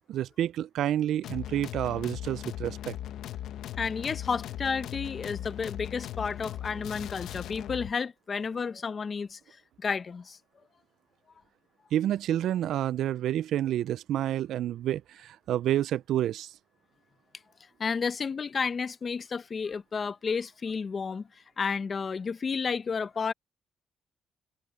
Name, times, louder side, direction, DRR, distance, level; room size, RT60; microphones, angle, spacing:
voice 1, 0.1-2.9 11.9-16.5, right 12 dB, 75° right, 0.3 m, -29 dB
sound 1, 1.2-7.9, left 12 dB, 80° left, 1.1 m, -38 dB
voice 2, 3.8-9.4 9.8-10.4 17.8-21.3 21.6-23.3, left 5 dB, 40° left, 1.0 m, -31 dB
cardioid pair, 90°, 0 cm